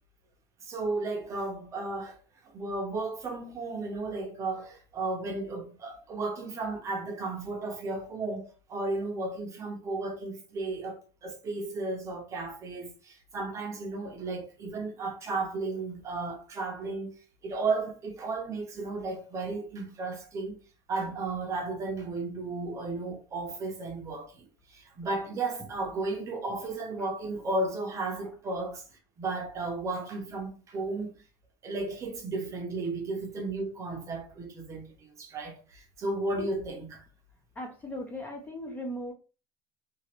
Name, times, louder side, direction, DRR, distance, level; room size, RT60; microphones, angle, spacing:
voice 1, 0.7-2.2 2.5-17.1 17.4-20.5 20.9-24.4 24.7-28.8 29.2-31.1 31.6-37.0, right 3 dB, 25° right, 0.7 m, -34 dB
voice 2, 37.6-39.1, equal, 15° left, 0.5 m, -38 dB
2.9 x 2.4 x 2.9 m
cardioid pair, 160°, 11 cm